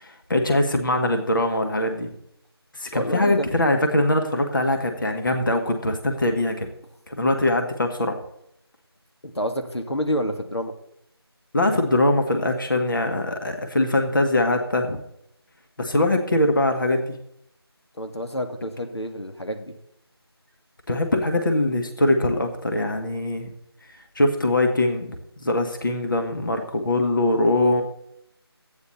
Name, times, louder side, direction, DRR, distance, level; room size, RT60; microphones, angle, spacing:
voice 1, 0.0-2.1 2.7-6.7 7.1-8.2 11.5-15.0 15.8-17.2 20.9-23.5 23.9-25.1 25.4-27.8, left 1 dB, 50° left, 4 dB, 1.6 m, -22 dB
voice 2, 2.9-3.5 9.2-10.7 18.0-19.8, equal, 85° left, 7 dB, 2.0 m, -28 dB
13.0 x 9.6 x 4.2 m, 0.76 s
figure-of-eight pair, 170°, 14 cm